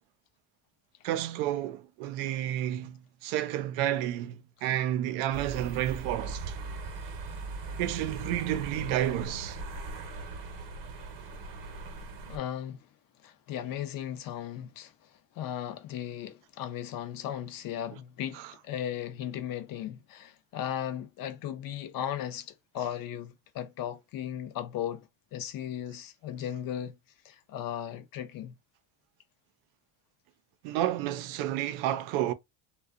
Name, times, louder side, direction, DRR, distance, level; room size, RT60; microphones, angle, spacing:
voice 1, 1.0-6.5 7.8-9.6 18.4-18.5 30.6-32.3, right 12 dB, 85° right, 0.6 m, -31 dB
sound 1, 5.3-12.4, right 3 dB, 45° right, 0.8 m, -39 dB
voice 2, 12.3-12.9 13.2-14.9 15.4-25.1 25.3-27.0 27.2-28.5, left 10 dB, 50° left, 0.5 m, -36 dB
2.5 x 2.2 x 2.4 m
cardioid pair, 135°, 46 cm